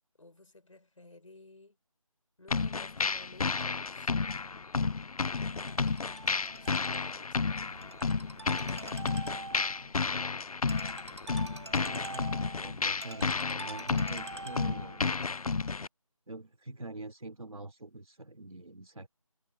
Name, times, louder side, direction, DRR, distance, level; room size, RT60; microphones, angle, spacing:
voice 1, 0.2-1.8 2.4-4.4 5.3-5.8 6.4-7.7 14.5-14.6, left 2 dB, 65° left, 4.7 m, -56 dB
sound 1, 2.5-15.9, left 4 dB, 85° left, 0.5 m, -32 dB
Ringtone, 5.5-15.0, right 3 dB, 50° right, 3.9 m, -46 dB
voice 2, 11.8-15.0 16.3-19.1, right 2 dB, 75° right, 2.8 m, -45 dB
figure-of-eight pair, 165°, 18 cm